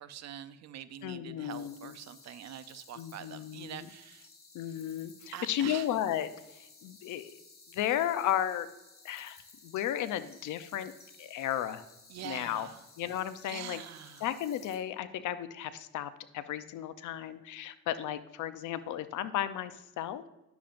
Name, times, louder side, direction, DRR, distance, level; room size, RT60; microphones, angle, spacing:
voice 1, 0.0-4.3 5.3-5.9 12.1-12.8 13.4-14.3, right 10 dB, 60° right, 12 dB, 0.6 m, -44 dB
voice 2, 1.0-2.0 3.0-3.9 4.5-7.4 7.7-8.7 9.0-10.9 11.2-11.8 12.2-12.7 13.0-13.8 14.2-20.3, left 11 dB, 80° left, 12 dB, 0.6 m, -34 dB
sound 1, 1.5-14.8, left 3 dB, 30° left, 1.8 m, -57 dB
10.0 x 7.1 x 2.5 m, 0.97 s
cardioid pair, 90°, 30 cm